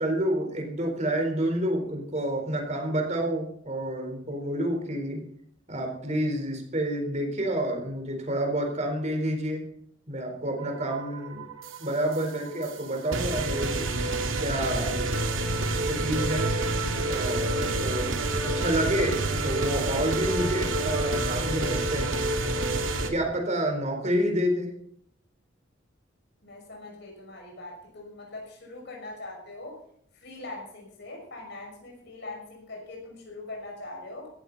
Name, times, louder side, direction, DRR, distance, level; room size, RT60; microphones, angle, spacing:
voice 1, 0.0-5.2 5.7-9.6 10.1-11.4 11.8-13.9 14.4-15.0 15.3-16.5 17.1-18.1 18.4-19.2 19.4-22.1 23.1-24.7, right 1 dB, 35° right, 3 dB, 4.2 m, -29 dB
sound 1, 10.6-23.1, right 2 dB, 85° right, 2.4 m, -28 dB
voice 2, 26.4-29.8 30.1-34.3, left 2 dB, 60° left, -1 dB, 6.4 m, -42 dB
17.0 x 15.5 x 4.1 m, 0.67 s
head